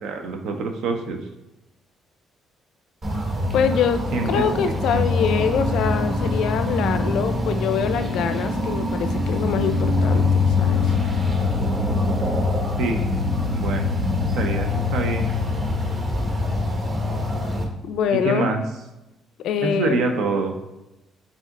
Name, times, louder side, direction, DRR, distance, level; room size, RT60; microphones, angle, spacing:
voice 1, 0.0-1.2 4.1-4.5 4.9-5.0 12.8-13.0 13.5-13.9 14.3-15.3 18.1-18.6 19.6-20.5, right 3 dB, 80° right, 4 dB, 0.6 m, -25 dB
sound 1, 3.0-17.6, left 2 dB, 30° right, 0.8 m, -23 dB
voice 2, 3.5-4.0 4.3-10.9 17.8-18.5 19.4-20.1, left 7 dB, 75° left, 9 dB, 0.4 m, -24 dB
5.3 x 2.7 x 3.7 m, 0.95 s
cardioid pair, 115°, 0 cm